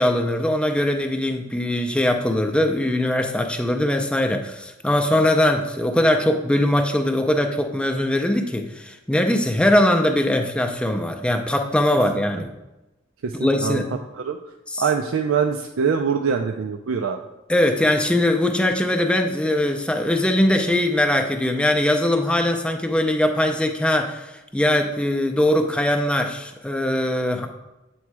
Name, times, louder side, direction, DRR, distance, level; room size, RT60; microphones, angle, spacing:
voice 1, 0.0-12.5 13.4-13.9 14.7-14.8 17.5-27.5, left 1 dB, 5° left, 4 dB, 0.4 m, -21 dB
voice 2, 13.2-13.8 14.2-14.4 14.8-17.2, right 6 dB, 85° right, 4 dB, 0.4 m, -23 dB
8.2 x 3.1 x 4.7 m, 0.98 s
head